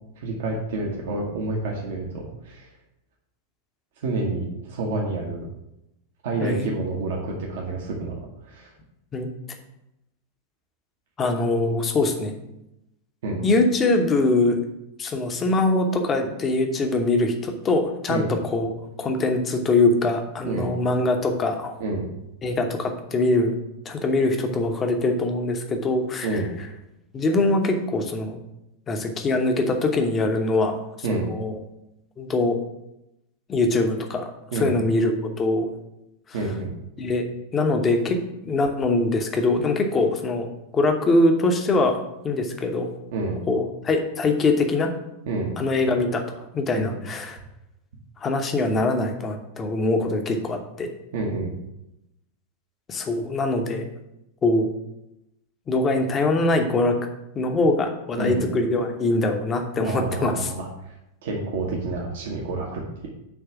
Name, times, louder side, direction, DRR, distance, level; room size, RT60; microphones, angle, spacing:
voice 1, 0.2-2.7 4.0-5.4 6.2-8.7 13.2-13.4 18.1-18.3 20.4-20.7 21.8-22.1 26.2-26.5 31.0-31.3 34.5-34.8 36.3-36.7 43.1-43.3 45.3-45.5 46.7-46.9 51.1-51.6 58.2-58.4 59.8-60.9 61.2-63.1, right 3 dB, 55° right, -1 dB, 1.0 m, -28 dB
voice 2, 6.4-6.7 9.1-9.3 11.2-12.3 13.4-14.6 15.0-18.7 19.0-21.7 22.4-23.5 23.8-26.4 27.1-28.4 28.9-30.8 31.1-31.6 32.2-32.6 33.5-34.3 34.5-35.7 36.3-36.4 37.0-37.2 37.5-40.5 40.7-42.0 42.2-42.9 43.5-44.9 45.6-46.2 46.5-47.4 48.2-50.9 52.9-53.8 54.4-54.7 55.7-57.0 57.3-60.5, left 2 dB, 25° left, 5 dB, 1.0 m, -23 dB
7.2 x 3.2 x 5.9 m, 0.86 s
figure-of-eight pair, 90°, 0 cm